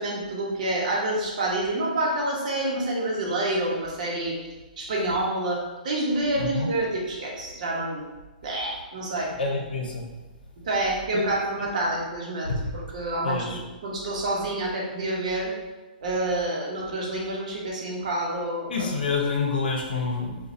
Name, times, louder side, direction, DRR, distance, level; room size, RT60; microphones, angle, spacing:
voice 1, 0.0-4.5 4.8-8.0 8.4-9.3 10.6-15.5 16.0-18.9, right 1 dB, 55° right, -2 dB, 0.8 m, -28 dB
voice 2, 6.4-6.7 9.4-10.0 11.1-11.3 12.6-12.7 13.2-13.6 18.7-20.4, left 4 dB, 80° left, 0 dB, 0.7 m, -27 dB
2.6 x 2.3 x 4.0 m, 1.2 s
hypercardioid pair, 170°, 5 cm